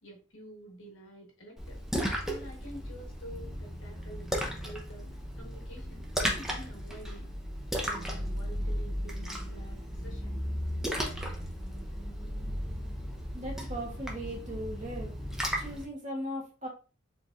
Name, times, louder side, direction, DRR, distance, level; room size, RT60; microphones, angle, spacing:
voice 1, 0.0-1.8 2.2-7.3 7.8-10.4, right 1 dB, 70° left, 2 dB, 1.4 m, -48 dB
Splash splatter, 1.6-15.9, equal, ahead, 0.7 m, -35 dB
sound 1, 3.3-15.8, right 1 dB, 75° right, 1.8 m, -51 dB
voice 2, 13.3-15.1 15.5-16.7, equal, 40° right, -2 dB, 1.6 m, -38 dB
4.4 x 3.6 x 2.5 m, 0.35 s
head